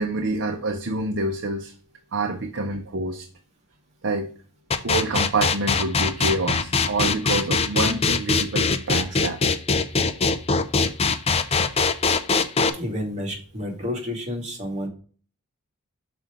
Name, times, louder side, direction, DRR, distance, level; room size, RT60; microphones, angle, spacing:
voice 1, 0.0-1.7 2.1-3.3 4.0-4.3 4.8-9.4 11.6-11.7, right 2 dB, 55° right, 3 dB, 0.7 m, -27 dB
sound 1, 4.7-12.7, left 4 dB, 30° left, 0.5 m, -21 dB
voice 2, 12.7-14.9, left 1 dB, 30° right, -1 dB, 2.2 m, -30 dB
6.1 x 5.0 x 3.7 m, 0.41 s
head